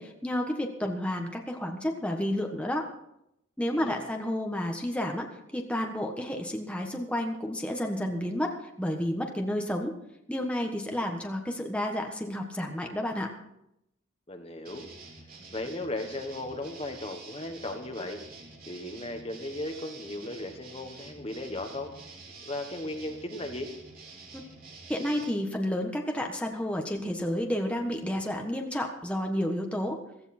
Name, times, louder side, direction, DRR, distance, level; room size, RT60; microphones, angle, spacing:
voice 1, 0.0-2.9 3.6-5.3 5.5-9.9 10.3-13.3 24.3-24.4 24.9-30.0, left 1 dB, 5° left, 2 dB, 1.4 m, -31 dB
voice 2, 3.7-4.1 14.3-14.9 15.5-18.2 18.7-21.9 22.4-23.7, left 1 dB, 30° left, 5 dB, 1.4 m, -36 dB
sound 1, 14.6-25.3, right 3 dB, 45° right, 3.3 m, -48 dB
16.0 x 14.5 x 4.4 m, 0.80 s
head